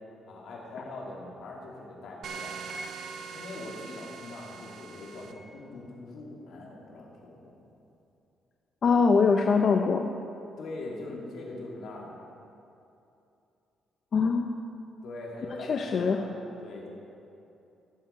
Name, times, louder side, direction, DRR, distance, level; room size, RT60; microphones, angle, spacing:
voice 1, 0.3-2.5 3.3-7.6 10.6-12.1 15.0-16.3 16.6-16.9, left 2 dB, 75° left, -2 dB, 2.4 m, -42 dB
sound 1, 2.2-5.3, right 5 dB, 65° right, 0.9 m, -41 dB
voice 2, 8.8-10.1 14.1-14.6 15.7-16.2, left 5 dB, 50° left, 4 dB, 0.6 m, -23 dB
16.0 x 7.5 x 4.4 m, 2.8 s
cardioid pair, 90°, 0 cm